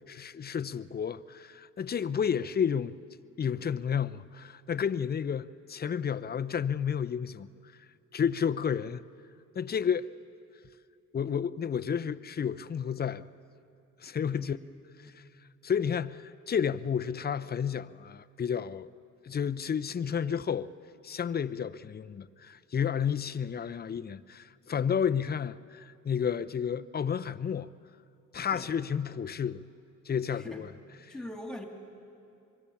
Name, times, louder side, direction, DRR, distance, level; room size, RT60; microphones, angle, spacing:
voice 1, 0.1-3.0 3.4-7.5 8.1-9.0 9.5-10.1 11.1-13.2 14.0-14.6 15.0-15.2 15.6-18.9 19.2-20.7 21.0-27.7 28.3-29.7 30.1-30.7 31.1-31.2, left 7 dB, 30° left, 0.6 m, -31 dB
voice 2, 31.1-31.6, left 1 dB, ahead, 2.6 m, -42 dB
25.0 x 22.5 x 7.1 m
cardioid pair, 90°, 30 cm